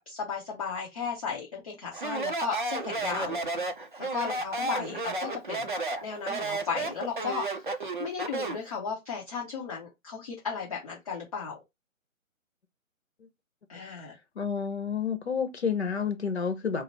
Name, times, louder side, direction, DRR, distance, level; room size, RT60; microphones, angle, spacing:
voice 1, 0.0-3.4 4.0-5.7 6.0-11.6 13.7-14.2, left 6 dB, 25° left, 0.8 m, -35 dB
Speech, 1.9-8.7, right 2 dB, 40° right, 0.5 m, -32 dB
voice 2, 14.4-16.8, left 6 dB, 50° left, 1.0 m, -29 dB
3.9 x 2.1 x 3.9 m
figure-of-eight pair, 145°, 41 cm